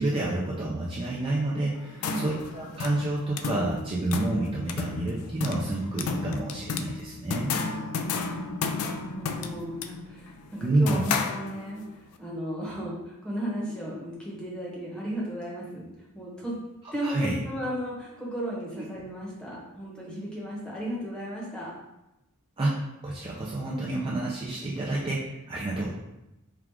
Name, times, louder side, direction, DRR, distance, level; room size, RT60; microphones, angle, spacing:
voice 1, 0.0-7.5 10.6-11.0 17.0-17.4 18.8-18.9 22.6-22.8 23.0-25.9, right 2 dB, 25° right, -5 dB, 0.4 m, -29 dB
sound 1, 1.7-11.9, left 5 dB, 85° left, 0.4 m, -33 dB
voice 2, 8.0-11.8 12.2-15.9 16.1-16.6 16.9-21.7, equal, 5° left, -5 dB, 0.9 m, -35 dB
4.6 x 2.4 x 3.5 m, 0.93 s
head